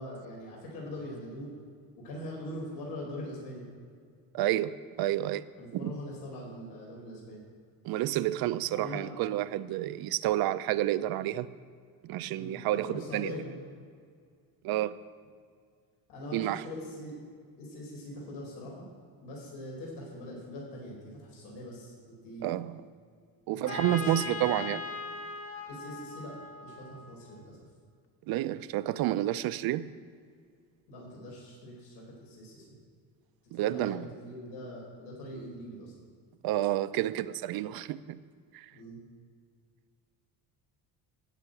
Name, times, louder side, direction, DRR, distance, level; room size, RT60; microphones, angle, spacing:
voice 1, 0.0-1.5 1.9-3.6 5.6-7.4 8.7-9.1 12.3-13.5 16.1-17.1 17.6-18.9 19.2-21.9 22.2-22.5 23.5-24.7 25.7-26.3 26.6-27.6 30.9-32.7 33.5-35.9 38.7-39.0, left 1 dB, 85° left, -3 dB, 4.3 m, -42 dB
voice 2, 4.3-5.4 5.7-5.9 7.8-11.5 12.0-13.3 14.6-15.0 16.3-16.6 22.4-22.8 23.5-24.8 28.3-29.9 33.5-34.1 36.4-38.2 38.5-38.7, right 14 dB, 65° right, 14 dB, 0.6 m, -30 dB
Trumpet, 23.7-27.4, left 4 dB, 35° left, 1.3 m, -39 dB
15.5 x 5.9 x 8.9 m, 2.1 s
cardioid pair, 165°, 39 cm